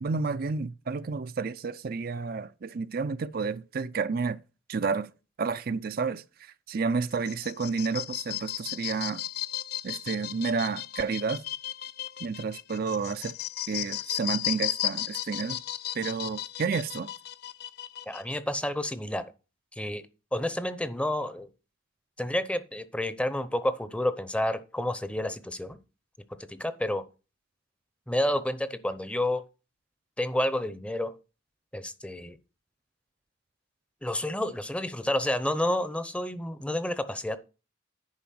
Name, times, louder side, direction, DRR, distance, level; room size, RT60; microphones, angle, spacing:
voice 1, 0.0-4.4 4.7-5.1 5.4-9.2 9.8-11.4 12.2-13.3 13.7-15.6 15.9-17.1, right 4 dB, 50° right, 0.5 m, -30 dB
sound 1, 7.1-18.4, left 13 dB, 55° left, 0.5 m, -35 dB
voice 2, 18.1-19.3 19.7-20.0 20.3-21.5 22.2-25.8 26.4-27.0 28.1-29.4 30.2-31.1 31.7-32.4 34.0-37.4, left 1 dB, 5° left, 0.7 m, -30 dB
10.5 x 4.9 x 7.6 m
head